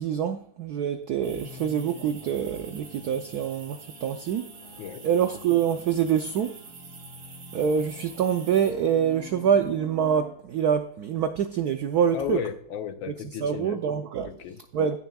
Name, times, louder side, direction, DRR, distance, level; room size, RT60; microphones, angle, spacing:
voice 1, 0.0-4.5 5.0-6.6 7.5-12.4 13.4-14.3 14.7-15.0, right 8 dB, 90° right, 0.8 m, -25 dB
sound 1, 1.2-10.3, left 4 dB, 30° left, 4.0 m, -48 dB
sound 2, 1.2-8.7, right 5 dB, 45° right, 1.5 m, -47 dB
voice 2, 12.1-13.8 14.2-14.6, left 9 dB, 70° left, 1.4 m, -34 dB
16.5 x 7.0 x 2.3 m
omnidirectional pair, 2.4 m